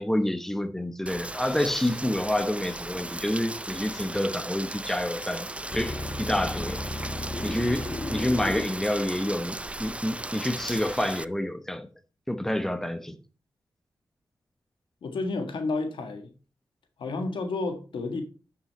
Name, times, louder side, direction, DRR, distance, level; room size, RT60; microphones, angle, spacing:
voice 1, 0.0-6.8 7.4-11.9 12.3-13.2, left 1 dB, 5° left, 1.0 m, -28 dB
Rain, 1.1-11.2, right 2 dB, 15° right, 0.4 m, -37 dB
sound 1, 5.7-10.8, left 2 dB, 30° left, 1.4 m, -35 dB
voice 2, 15.0-16.3 17.0-18.2, left 3 dB, 90° left, 1.7 m, -31 dB
11.0 x 5.8 x 4.2 m
cardioid pair, 60°, 8 cm